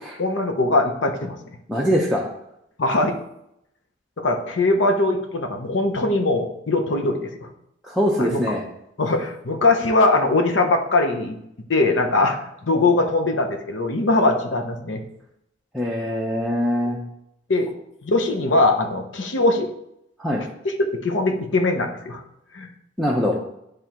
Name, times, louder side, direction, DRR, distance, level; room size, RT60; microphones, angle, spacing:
voice 1, 0.2-1.4 2.8-3.2 4.2-7.5 8.2-8.4 9.0-11.4 11.7-15.0 17.5-17.7 18.0-19.7 20.6-22.2 22.5-22.7, left 2 dB, 80° left, 4 dB, 0.8 m, -21 dB
voice 2, 1.7-2.2 7.8-8.6 15.7-17.0 20.2-20.4 23.0-23.4, equal, ahead, -4 dB, 0.6 m, -22 dB
10.0 x 3.4 x 3.0 m, 0.80 s
head